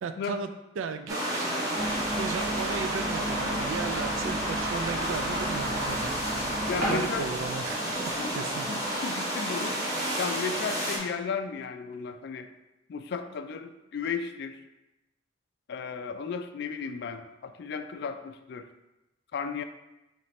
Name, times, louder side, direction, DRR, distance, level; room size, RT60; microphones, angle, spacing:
voice 1, 0.0-0.5 0.8-1.7 2.1-6.6 6.9-8.7, right 5 dB, 90° right, 9 dB, 0.3 m, -36 dB
sound 1, 1.1-11.0, right 1 dB, 20° right, 0.9 m, -31 dB
sound 2, 1.7-9.0, right 1 dB, 45° right, 1.2 m, -35 dB
voice 2, 6.7-7.3 8.2-8.4 8.7-9.8 10.2-12.5 12.9-14.6 15.7-18.7 19.3-19.6, left 5 dB, 60° left, 8 dB, 0.3 m, -34 dB
3.2 x 3.1 x 4.2 m, 0.97 s
head